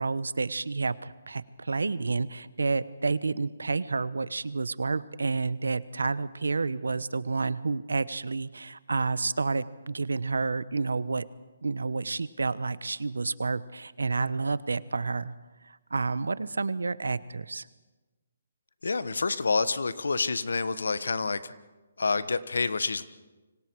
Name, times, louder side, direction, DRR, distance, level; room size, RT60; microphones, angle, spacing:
voice 1, 0.0-11.3 11.6-15.3 15.6-17.7, right 3 dB, 85° right, 17 dB, 1.0 m, -30 dB
voice 2, 18.8-21.5 22.0-23.0, left 4 dB, 80° left, 14 dB, 1.3 m, -28 dB
29.0 x 25.5 x 4.7 m, 1.2 s
hypercardioid pair, 150°, 0 cm